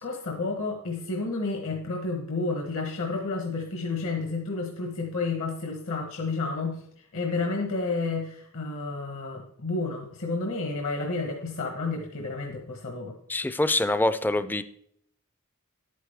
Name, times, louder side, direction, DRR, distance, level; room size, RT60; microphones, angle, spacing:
voice 1, 0.0-13.1, left 3 dB, 65° left, 2 dB, 1.2 m, -31 dB
voice 2, 13.3-14.6, left 1 dB, 10° left, 13 dB, 0.4 m, -25 dB
11.0 x 9.2 x 3.4 m, 0.70 s
head